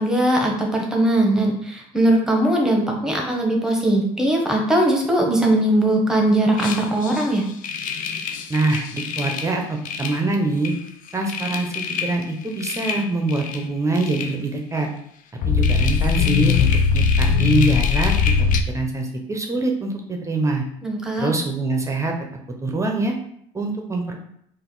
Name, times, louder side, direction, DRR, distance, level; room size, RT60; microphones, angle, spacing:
voice 1, 0.0-7.4 20.8-21.3, right 1 dB, 5° right, 0 dB, 1.2 m, -20 dB
sound 1, 6.6-7.2 7.6-9.5 9.8-10.2 10.6-10.8 11.1-12.2 12.6-13.7 14.0-14.3 15.4-18.6, left 6 dB, 60° left, 0.5 m, -22 dB
voice 2, 8.5-10.7 11.1-11.7 12.0-14.9 15.5-18.1 18.7-20.6 21.2-22.1 22.6-23.1 23.5-24.2, right 2 dB, 20° right, 2 dB, 0.8 m, -24 dB
4.0 x 2.6 x 3.9 m, 0.70 s
supercardioid pair, 80°, 15 cm